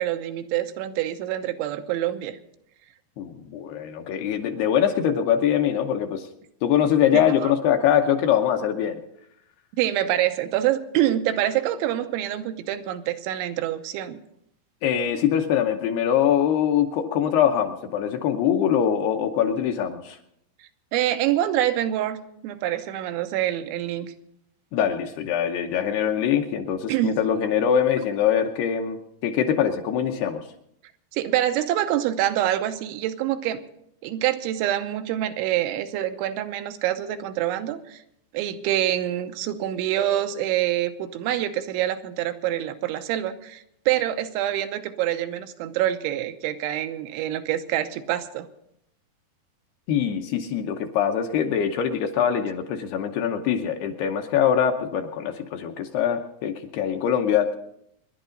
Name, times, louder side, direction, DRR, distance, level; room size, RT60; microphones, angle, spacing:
voice 1, 0.0-2.4 7.1-7.5 9.8-14.2 20.9-24.1 26.9-27.2 31.1-33.6 34.0-38.0 38.3-48.5, right 12 dB, 90° right, 8 dB, 3.3 m, -26 dB
voice 2, 3.2-6.3 6.6-9.0 14.8-20.2 24.7-30.4 49.9-57.6, left 9 dB, 75° left, 4 dB, 2.6 m, -23 dB
26.0 x 11.0 x 3.9 m, 0.75 s
omnidirectional pair, 5.2 m